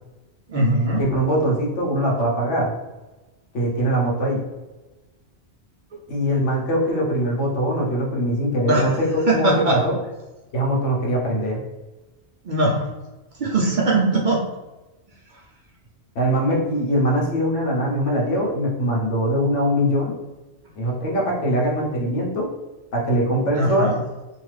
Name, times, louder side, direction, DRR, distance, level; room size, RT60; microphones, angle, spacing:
voice 1, 0.5-1.0 5.9-6.0 8.7-9.0 9.3-9.8 12.4-12.9 13.4-14.4 23.5-24.0, right 2 dB, 55° right, -2 dB, 0.5 m, -20 dB
voice 2, 1.0-2.7 3.5-4.4 6.1-9.1 9.3-9.9 10.5-11.6 16.1-20.1 20.8-22.5 22.9-23.9, equal, 90° left, -2 dB, 1.2 m, -22 dB
2.7 x 2.3 x 3.1 m, 1.1 s
omnidirectional pair, 1.2 m